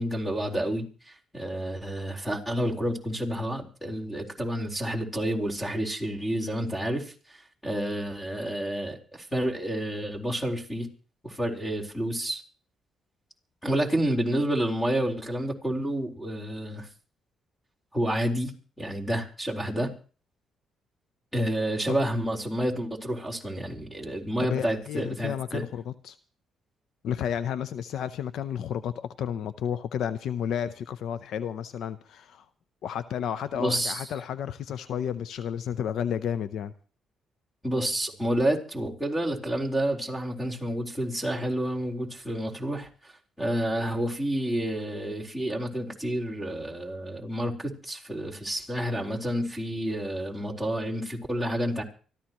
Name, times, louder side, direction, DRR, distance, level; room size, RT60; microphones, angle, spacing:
voice 1, 0.0-10.9 11.2-12.4 13.6-16.9 17.9-19.9 21.3-25.6 33.5-34.0 37.6-43.1 43.4-51.8, right 1 dB, 10° left, 1 dB, 4.2 m, -29 dB
voice 2, 24.4-26.2 27.0-32.5 32.8-36.7, left 9 dB, 75° left, 13 dB, 0.7 m, -32 dB
25.0 x 14.0 x 3.1 m, 0.39 s
cardioid pair, 90°, 0 cm